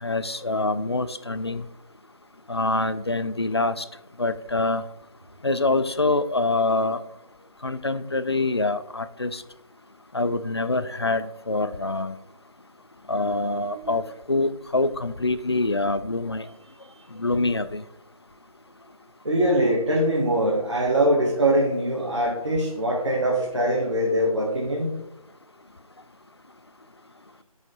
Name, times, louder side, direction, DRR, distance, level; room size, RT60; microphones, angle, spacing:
voice 1, 0.0-1.6 2.5-3.8 4.2-4.8 5.4-7.0 7.6-9.4 10.1-12.1 13.1-14.0 14.3-16.5 17.1-17.8, left 2 dB, 45° left, 13 dB, 0.4 m, -25 dB
voice 2, 19.2-24.9, right 1 dB, 50° right, -4 dB, 1.8 m, -22 dB
9.8 x 4.9 x 3.9 m, 0.85 s
figure-of-eight pair, 165°, 19 cm